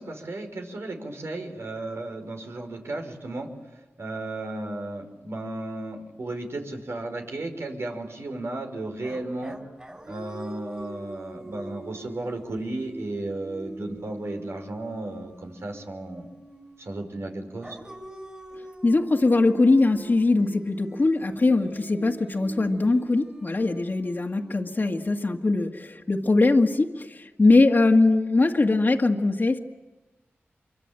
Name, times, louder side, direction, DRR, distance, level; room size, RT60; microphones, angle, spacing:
voice 1, 0.0-3.5 4.0-9.6 10.1-16.3 16.8-17.8, right 2 dB, 70° right, 4 dB, 5.1 m, -34 dB
sound 1, 9.0-17.1 17.6-25.7, right 1 dB, 20° right, 4.5 m, -44 dB
voice 2, 18.8-29.6, left 3 dB, 45° left, 3 dB, 1.9 m, -21 dB
27.0 x 24.0 x 9.0 m, 1.2 s
wide cardioid pair, 65°, 5 cm